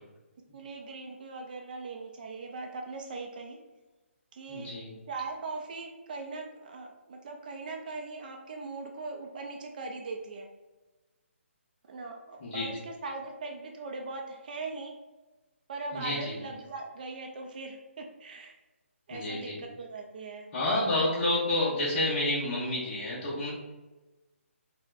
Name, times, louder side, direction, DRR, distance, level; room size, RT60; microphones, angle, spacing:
voice 1, 0.5-3.6 4.3-4.7 5.1-10.5 11.8-14.9 15.7-18.6 19.1-20.5, right 3 dB, 40° right, 2 dB, 0.4 m, -40 dB
voice 2, 4.5-4.9 12.4-12.7 15.9-16.3 19.1-19.6 20.5-23.5, left 1 dB, 30° left, -8 dB, 0.7 m, -29 dB
4.0 x 2.1 x 2.4 m, 1.1 s
hypercardioid pair, 155°, 7 cm